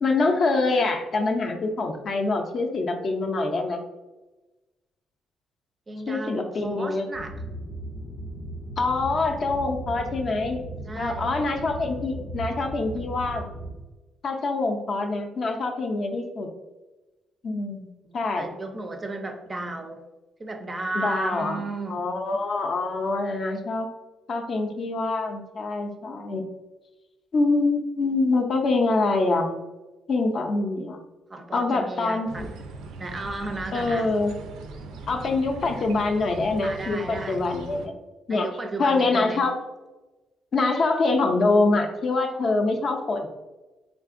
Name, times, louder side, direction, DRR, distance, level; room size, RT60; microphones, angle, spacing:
voice 1, 0.0-3.8 6.1-7.1 8.8-10.6 11.0-13.5 14.2-16.5 17.4-18.5 20.9-21.6 21.9-23.9 24.3-26.5 27.3-29.5 30.1-31.0 31.5-32.5 33.7-34.3 35.1-38.0 38.3-38.5 38.8-39.6 40.5-43.3, left 3 dB, 40° left, 4 dB, 0.4 m, -25 dB
voice 2, 5.9-7.3 10.9-11.4 18.0-20.0 20.4-22.0 31.3-32.5 33.0-34.1 36.6-37.4 38.3-39.4, right 2 dB, 25° right, 5 dB, 0.4 m, -34 dB
sound 1, 7.1-13.7, right 1 dB, 85° left, 0.6 m, -36 dB
sound 2, 32.3-37.9, right 3 dB, 85° right, 0.4 m, -40 dB
3.7 x 3.4 x 2.4 m, 1.1 s
cardioid pair, 140°, 0 cm